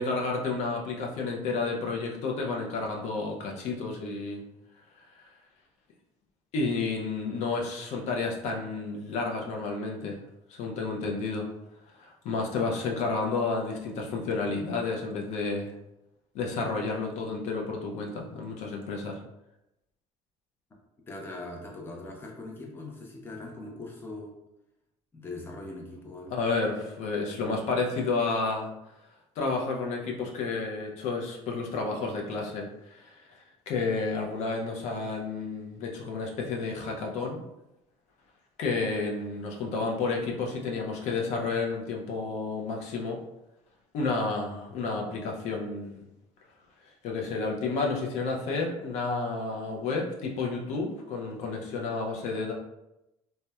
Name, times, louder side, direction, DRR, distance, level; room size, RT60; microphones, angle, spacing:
voice 1, 0.0-4.4 5.2-5.3 6.5-10.2 10.5-11.5 12.0-15.7 16.3-19.2 26.3-28.7 29.4-33.4 33.7-37.4 38.6-43.2 43.9-46.0 47.0-52.5, left 3 dB, 70° left, 0 dB, 0.5 m, -31 dB
voice 2, 21.1-24.3 25.1-26.3, left 2 dB, 20° left, 0 dB, 0.5 m, -41 dB
2.8 x 2.1 x 2.2 m, 0.89 s
cardioid pair, 125°, 12 cm